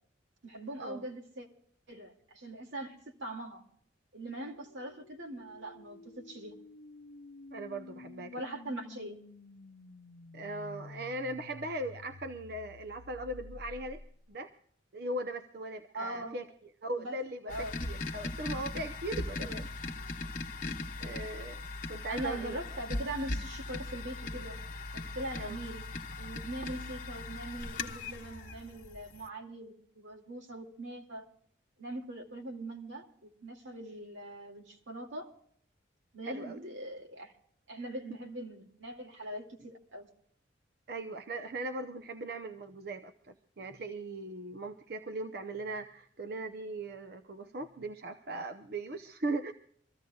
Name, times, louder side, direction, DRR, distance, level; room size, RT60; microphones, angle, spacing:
voice 1, 0.4-1.5 1.9-3.6 4.1-6.6 8.3-9.2 15.9-16.4 17.0-17.7 22.1-24.6 24.9-25.8 26.2-31.3 31.8-35.3 36.1-37.3 37.7-40.1, right 1 dB, 85° right, 1 dB, 2.4 m, -41 dB
sound 1, 4.3-14.3, left 2 dB, 70° left, 0.6 m, -51 dB
voice 2, 7.5-8.3 10.3-14.0 14.3-14.5 14.9-16.4 16.8-17.5 17.8-19.7 21.0-21.6 21.9-22.6 25.4-25.6 36.2-36.6 40.9-49.5, right 2 dB, 55° right, 7 dB, 0.7 m, -39 dB
sound 2, 17.5-29.3, left 2 dB, 45° left, 1.1 m, -39 dB
25.5 x 15.0 x 2.3 m, 0.65 s
head